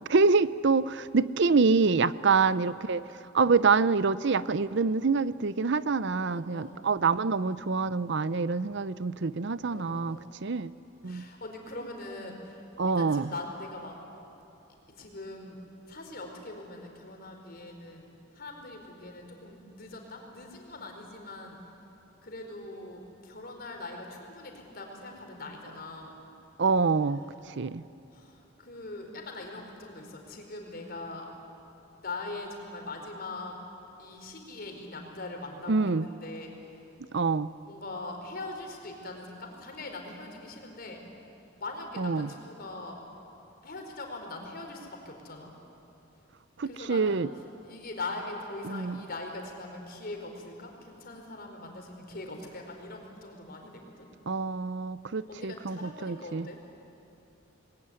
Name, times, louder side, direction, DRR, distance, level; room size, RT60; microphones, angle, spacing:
voice 1, 0.1-3.0 3.3-10.7 11.0-11.2 12.8-13.3 26.6-27.2 27.6-27.8 35.7-36.1 37.1-37.5 42.0-42.3 46.6-47.3 48.6-49.0 54.3-56.5, right 4 dB, 60° right, 16 dB, 0.6 m, -26 dB
voice 2, 2.3-2.8 6.3-6.7 9.7-10.3 11.0-12.6 12.9-14.0 15.0-15.6 15.9-21.6 22.2-26.1 28.1-28.3 28.6-31.3 32.0-33.6 34.0-36.5 37.6-41.0 41.6-43.0 43.6-45.5 46.6-47.1 47.6-54.1 55.3-56.6, left 2 dB, 50° left, 2 dB, 4.4 m, -41 dB
28.0 x 20.5 x 9.8 m, 2.8 s
head